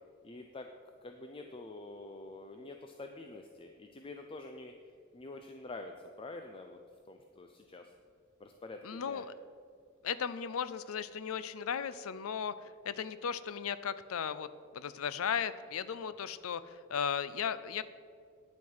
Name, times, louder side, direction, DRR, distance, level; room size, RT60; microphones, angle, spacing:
voice 1, 0.2-0.7 1.0-4.7 5.1-6.8 7.1-7.9 8.4-9.2 16.2-16.3, left 2 dB, 25° left, 5 dB, 0.5 m, -47 dB
voice 2, 8.8-9.3 10.0-17.8, left 7 dB, 85° left, 15 dB, 0.5 m, -36 dB
9.7 x 7.6 x 5.6 m, 2.1 s
head